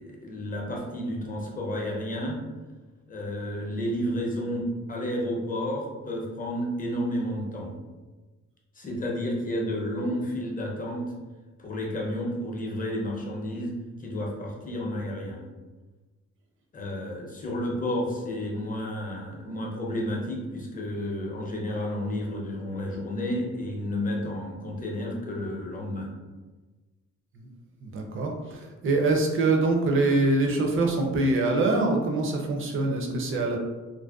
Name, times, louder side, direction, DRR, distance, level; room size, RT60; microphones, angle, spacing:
voice 1, 0.0-2.4 3.1-7.8 8.8-11.1 11.6-13.7 14.0-15.5 16.7-26.1, left 1 dB, 30° left, -1 dB, 0.6 m, -31 dB
voice 2, 27.8-33.6, right 2 dB, 45° right, 2 dB, 0.5 m, -24 dB
2.5 x 2.1 x 2.3 m, 1.3 s
cardioid pair, 90°, 30 cm